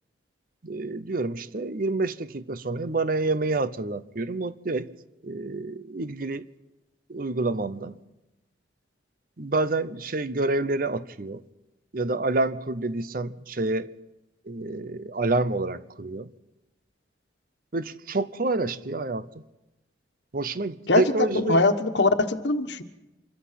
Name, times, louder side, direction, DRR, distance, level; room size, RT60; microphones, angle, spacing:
voice 1, 0.6-4.9 5.2-6.4 7.1-8.0 9.4-11.4 11.9-13.9 14.4-16.3 17.7-19.3 20.3-21.7, right 2 dB, 50° right, 0.8 m, -28 dB
voice 2, 20.9-22.8, left 2 dB, 70° left, 1.4 m, -22 dB
25.5 x 22.0 x 5.9 m
head